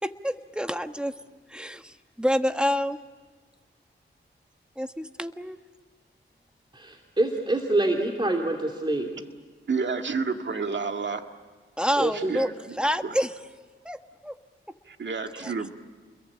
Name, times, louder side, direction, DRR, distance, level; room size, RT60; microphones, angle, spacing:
voice 1, 0.0-1.1 1.5-3.0 4.8-5.6 11.8-12.5 12.8-13.3 13.8-14.4 15.4-15.5, equal, 5° right, 8 dB, 1.4 m, -28 dB
voice 2, 6.7-9.2 12.0-12.3, right 2 dB, 25° right, 1 dB, 3.0 m, -26 dB
voice 3, 9.7-11.2 12.1-12.5 14.9-15.7, right 4 dB, 60° right, 5 dB, 2.0 m, -29 dB
29.5 x 22.0 x 8.8 m, 1.4 s
cardioid pair, 60°, 21 cm